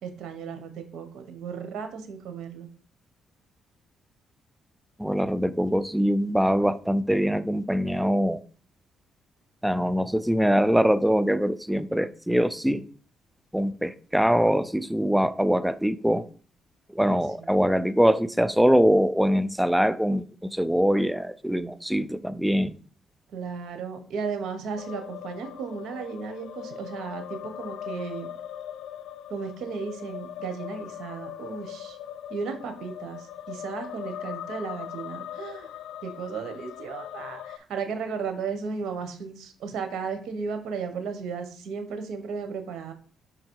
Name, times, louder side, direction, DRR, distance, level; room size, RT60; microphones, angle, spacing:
voice 1, 0.0-2.7 17.4-17.6 23.3-28.3 29.3-32.0 32.3-35.7 36.0-42.9, right 5 dB, 75° right, 1.0 m, -35 dB
voice 2, 5.0-8.4 9.6-12.9 13.5-16.3 16.9-22.8, equal, 5° right, 0.4 m, -23 dB
sound 1, 24.8-37.6, left 10 dB, 75° left, 0.3 m, -40 dB
5.5 x 3.8 x 4.6 m
cardioid pair, 90°, 0 cm